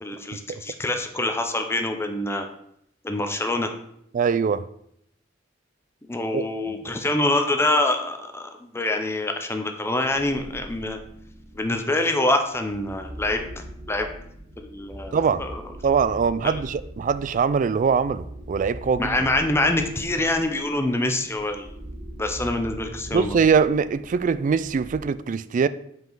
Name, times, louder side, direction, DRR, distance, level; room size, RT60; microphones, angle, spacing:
voice 1, 0.0-2.5 3.0-3.7 6.1-11.0 11.5-13.5 13.9-14.1 14.6-15.6 16.4-16.5 19.0-21.7 22.2-23.4, left 2 dB, 15° left, 0.6 m, -25 dB
voice 2, 4.1-4.6 6.3-6.8 15.1-15.4 15.8-19.2 23.1-25.7, right 6 dB, 45° right, 0.3 m, -22 dB
sound 1, 10.1-11.8 12.4-25.0, equal, 25° right, 1.1 m, -41 dB
7.8 x 5.0 x 3.9 m
head